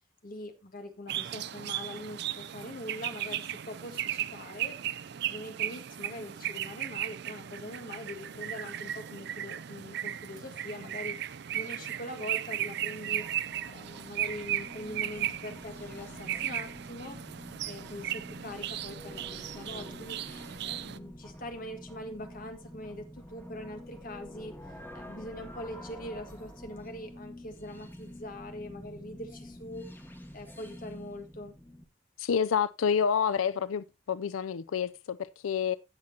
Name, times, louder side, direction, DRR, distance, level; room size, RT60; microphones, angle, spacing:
voice 1, 0.2-4.7 5.3-11.2 11.5-17.2 17.7-20.2 20.6-24.5 24.9-29.9 30.3-31.6, left 1 dB, 45° left, 1.8 m, -43 dB
sound 1, 1.1-21.0, right 12 dB, 55° right, 0.4 m, -36 dB
sound 2, 13.0-31.9, left 1 dB, 10° left, 1.4 m, -48 dB
voice 2, 32.2-35.8, left 7 dB, 85° left, 0.4 m, -28 dB
16.0 x 5.9 x 2.8 m
head